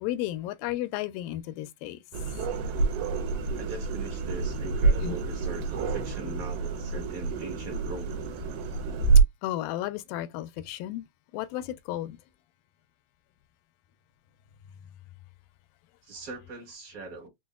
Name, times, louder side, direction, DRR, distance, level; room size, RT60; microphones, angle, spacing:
voice 1, 0.0-2.0 5.0-5.2 9.4-11.1 11.3-12.2, left 14 dB, 85° left, 2.2 m, -33 dB
sound 1, 2.1-9.2, right 4 dB, 90° right, 2.4 m, -27 dB
voice 2, 3.5-8.3 16.0-17.3, right 3 dB, 65° right, 0.8 m, -41 dB
6.1 x 2.1 x 2.3 m
omnidirectional pair, 4.0 m